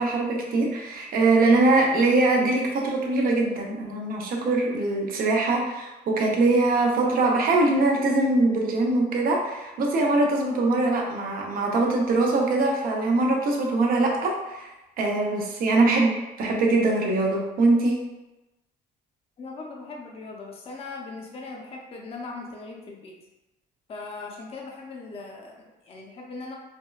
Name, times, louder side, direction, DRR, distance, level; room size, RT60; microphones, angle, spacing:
voice 1, 0.0-14.7 15.0-18.0, right 2 dB, 60° right, 0 dB, 0.7 m, -22 dB
voice 2, 19.4-23.2 23.9-26.6, left 3 dB, 35° left, 0 dB, 0.6 m, -39 dB
4.3 x 2.2 x 2.3 m, 1.0 s
cardioid pair, 110°, 17 cm